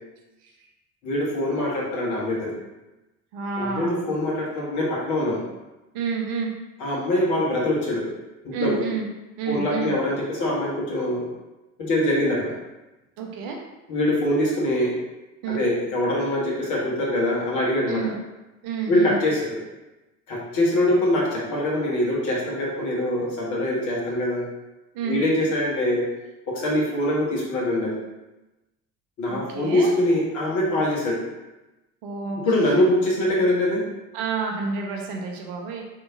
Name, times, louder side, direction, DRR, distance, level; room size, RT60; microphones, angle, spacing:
voice 1, 1.0-2.6 3.6-5.4 6.8-8.1 8.4-8.8 9.5-11.3 11.8-12.6 13.9-15.0 15.5-18.1 18.9-19.6 20.3-24.5 25.0-26.1 26.5-28.0 29.2-31.2 32.4-33.9, left 1 dB, 45° left, -4 dB, 1.2 m, -23 dB
voice 2, 3.3-4.1 5.9-6.5 8.5-9.1 9.4-9.9 13.2-13.6 15.4-15.6 17.9-18.2 18.6-19.2 24.9-25.2 29.3-29.9 32.0-32.5 34.1-35.8, right 5 dB, 55° right, 1 dB, 0.6 m, -29 dB
3.4 x 2.8 x 2.6 m, 1.0 s
figure-of-eight pair, 60°, 40 cm